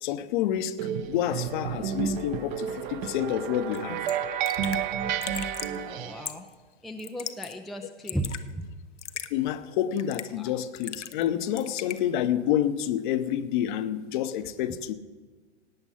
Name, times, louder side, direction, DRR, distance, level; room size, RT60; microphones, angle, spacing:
voice 1, 0.0-0.8 1.1-4.0 9.3-14.9, left 11 dB, 45° left, 0.9 m, -28 dB
sound 1, 0.8-6.3, right 8 dB, 40° right, 1.0 m, -31 dB
Raindrop / Drip, 3.7-3.8 4.1-4.2 4.4-4.8 5.2-5.8 6.2-6.5 7.0-7.5 7.8-8.4 9.0-9.3 10.0-10.4 10.8-11.3 11.6-12.0, left 9 dB, 80° left, 0.9 m, -37 dB
voice 2, 5.8-6.5 6.8-8.7 10.3-10.6, right 1 dB, ahead, 0.5 m, -36 dB
17.0 x 8.9 x 5.7 m
figure-of-eight pair, 110°, 35 cm